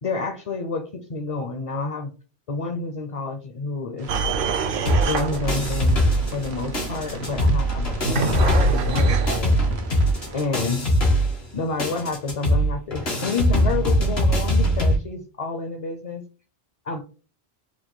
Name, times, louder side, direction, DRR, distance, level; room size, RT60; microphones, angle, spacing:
voice 1, 0.0-2.1 2.5-4.1 5.1-6.0 6.3-9.6 10.3-10.9 11.5-16.3 16.9-17.0, left 4 dB, 45° left, 6 dB, 0.5 m, -29 dB
sound 1, 4.0-10.5, right 3 dB, 85° right, 1.2 m, -39 dB
sound 2, 4.1-9.4, right 3 dB, 65° right, 0.7 m, -26 dB
sound 3, 4.9-6.5 6.7-15.0, equal, 80° left, 1.7 m, -21 dB
4.1 x 2.5 x 3.7 m, 0.35 s
omnidirectional pair, 1.0 m